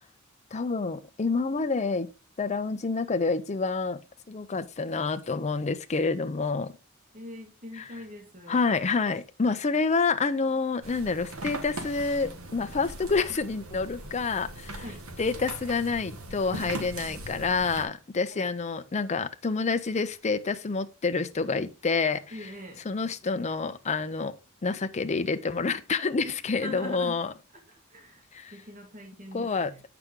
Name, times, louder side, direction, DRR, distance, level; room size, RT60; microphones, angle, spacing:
voice 1, 0.5-2.1 2.4-4.0 4.3-6.7 7.8-7.9 8.5-14.8 15.2-22.2 22.8-24.4 24.6-27.3 28.3-28.5 29.3-29.7, left 4 dB, 35° left, 0.6 m, -28 dB
voice 2, 7.1-8.6 14.8-15.1 17.1-17.2 18.3-18.5 22.3-22.9 26.3-27.2 27.7-28.3 28.5-29.8, left 1 dB, 40° right, 1.9 m, -43 dB
sound 1, 10.8-17.9, right 2 dB, 85° right, 1.4 m, -40 dB
8.0 x 5.9 x 3.7 m
head